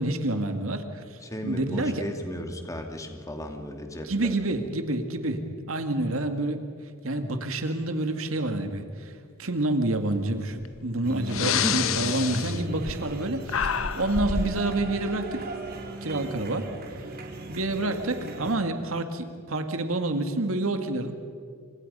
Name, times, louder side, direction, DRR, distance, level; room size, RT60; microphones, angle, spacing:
voice 1, 0.0-2.0 4.0-6.6 7.0-9.1 9.4-15.4 16.0-16.7 17.5-21.1, right 2 dB, 85° right, 7 dB, 1.9 m, -28 dB
voice 2, 1.2-4.3 11.6-12.2, equal, 15° left, 4 dB, 2.3 m, -34 dB
Breathing, 10.6-10.8 11.2-13.2 13.5-14.6, left 7 dB, 80° left, 0.9 m, -28 dB
sound 1, 11.0-18.5, right 1 dB, 50° right, 3.3 m, -37 dB
28.5 x 26.0 x 5.5 m, 2.2 s
head